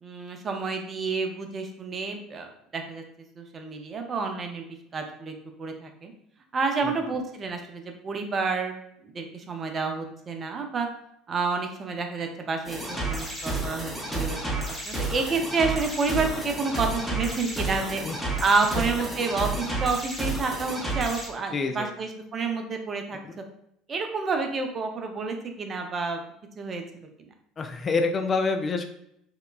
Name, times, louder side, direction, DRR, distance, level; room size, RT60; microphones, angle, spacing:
voice 1, 0.0-2.5 2.7-3.0 3.4-4.7 4.9-6.1 6.5-8.8 9.0-10.9 11.3-18.0 18.4-23.2 23.9-26.2 26.6-27.3, right 4 dB, 35° right, 4 dB, 0.5 m, -29 dB
sound 1, 12.7-21.3, right 2 dB, 5° left, 0.7 m, -31 dB
voice 2, 21.5-21.9 27.6-28.9, left 4 dB, 30° left, 5 dB, 0.3 m, -27 dB
2.8 x 2.1 x 2.3 m, 0.74 s
figure-of-eight pair, 65°, 0 cm